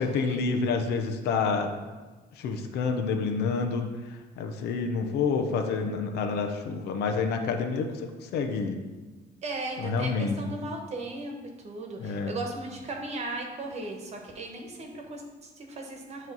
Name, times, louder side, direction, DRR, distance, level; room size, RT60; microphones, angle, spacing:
voice 1, 0.0-1.7 2.4-8.8 9.8-10.4 12.0-12.3, left 4 dB, 75° left, 4 dB, 0.7 m, -28 dB
voice 2, 9.4-16.3, right 2 dB, 40° right, 1 dB, 1.2 m, -37 dB
7.9 x 3.1 x 5.4 m, 1.3 s
cardioid pair, 110°, 17 cm